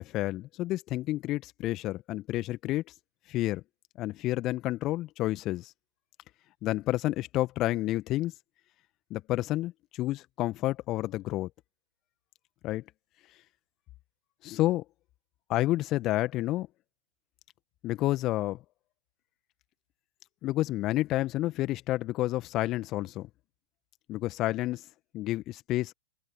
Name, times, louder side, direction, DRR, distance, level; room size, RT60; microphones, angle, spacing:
voice 1, 0.0-2.8 3.3-3.6 4.0-5.7 6.6-8.3 9.1-11.5 12.6-12.8 14.4-14.8 15.5-16.7 17.8-18.6 20.4-23.3 24.1-24.8 25.1-25.9, left 16 dB, 35° left, 1.8 m, -30 dB
open air
figure-of-eight pair, 100°, 0 cm